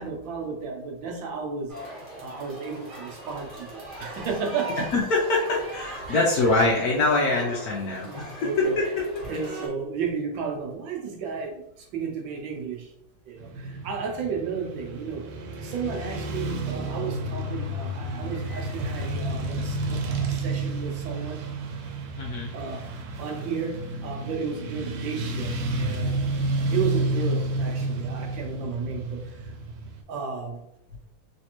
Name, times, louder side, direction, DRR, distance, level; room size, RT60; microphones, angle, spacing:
voice 1, 0.0-1.7 2.2-4.9 6.1-6.2 8.0-8.9 9.2-11.6 11.9-12.9 13.3-15.2 15.6-21.4 22.5-22.8 23.2-26.2 26.7-29.2 30.1-30.6, right 5 dB, 70° right, 1 dB, 1.3 m, -33 dB
sound 1, 1.7-9.7, right 1 dB, 35° right, 0.9 m, -39 dB
voice 2, 4.9-8.2 8.6-8.8 9.1-9.3 22.2-22.5, left 2 dB, 80° left, -3 dB, 0.8 m, -24 dB
Motorcycle / Traffic noise roadway noise, 13.4-30.0, right 2 dB, 90° right, 1.6 m, -30 dB
3.2 x 3.2 x 2.9 m, 0.80 s
omnidirectional pair, 2.3 m